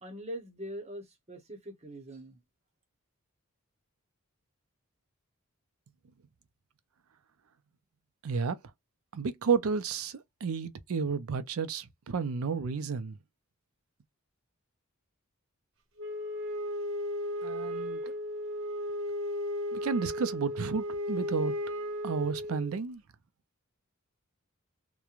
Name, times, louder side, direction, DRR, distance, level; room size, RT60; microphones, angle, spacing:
voice 1, 0.0-2.4, equal, 30° right, 0.9 m, -42 dB
voice 2, 8.2-8.6 9.1-13.2 17.4-18.1 19.7-21.6 22.0-23.0, right 5 dB, 75° right, 0.5 m, -32 dB
Wind instrument woodwind instrument, 16.0-22.8, equal, 60° right, 0.9 m, -35 dB
3.0 x 2.1 x 2.4 m
head